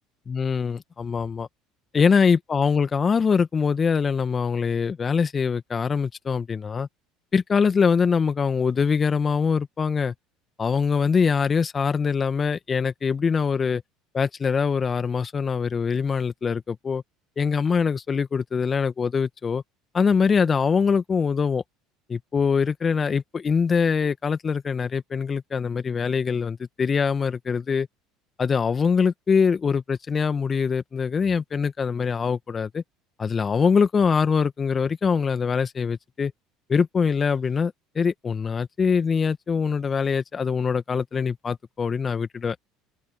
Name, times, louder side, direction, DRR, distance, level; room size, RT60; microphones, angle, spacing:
voice 1, 0.3-1.5 1.9-6.9 7.3-10.1 10.6-13.8 14.1-17.0 17.4-19.6 19.9-21.6 22.1-27.9 28.4-32.8 33.2-36.3 36.7-42.6, left 5 dB, 30° left, 2.0 m, -23 dB
open air
hypercardioid pair, 65°, 0 cm